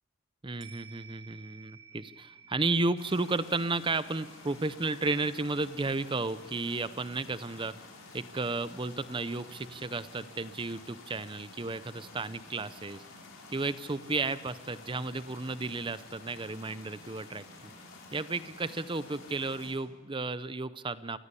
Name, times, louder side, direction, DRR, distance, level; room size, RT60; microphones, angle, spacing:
voice 1, 0.4-7.7 8.1-13.0 13.5-17.5 18.1-21.2, right 3 dB, 25° right, 15 dB, 0.6 m, -33 dB
sound 1, 0.6-9.2 9.5-9.6, right 7 dB, 60° right, 2.6 m, -56 dB
sound 2, 3.0-19.7, left 3 dB, 70° left, 5.2 m, -51 dB
28.0 x 15.0 x 8.4 m, 1.5 s
head